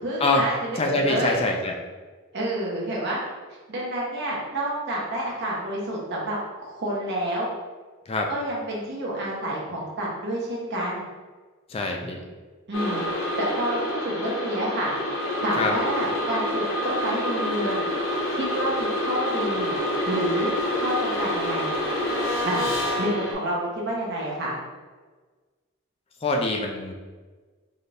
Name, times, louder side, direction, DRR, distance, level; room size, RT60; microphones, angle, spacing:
voice 1, 0.0-1.4 2.3-3.2 3.7-7.5 8.3-11.0 12.7-14.9 15.4-17.9 18.4-19.7 20.0-21.7 22.4-22.7 23.0-24.5, right 1 dB, 55° right, -4 dB, 1.0 m, -29 dB
voice 2, 0.8-1.7 8.1-8.3 11.7-12.2 15.6-15.7 26.2-26.9, left 2 dB, 25° left, 1 dB, 0.3 m, -24 dB
sound 1, 12.7-23.3, left 1 dB, 70° left, 1.0 m, -27 dB
4.1 x 2.6 x 3.3 m, 1.4 s
head